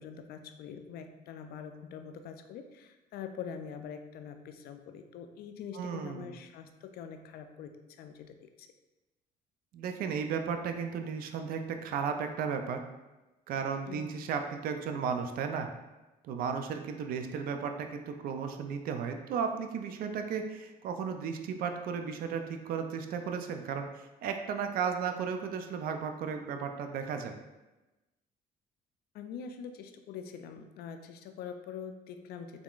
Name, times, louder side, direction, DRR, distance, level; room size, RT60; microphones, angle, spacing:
voice 1, 0.0-8.7 13.9-14.1 29.1-32.6, left 7 dB, 65° left, 7 dB, 0.4 m, -44 dB
voice 2, 5.7-6.3 9.7-12.8 13.5-15.7 16.2-27.3, right 6 dB, 60° right, 6 dB, 0.4 m, -34 dB
3.6 x 3.5 x 2.4 m, 1.1 s
cardioid pair, 110°, 17 cm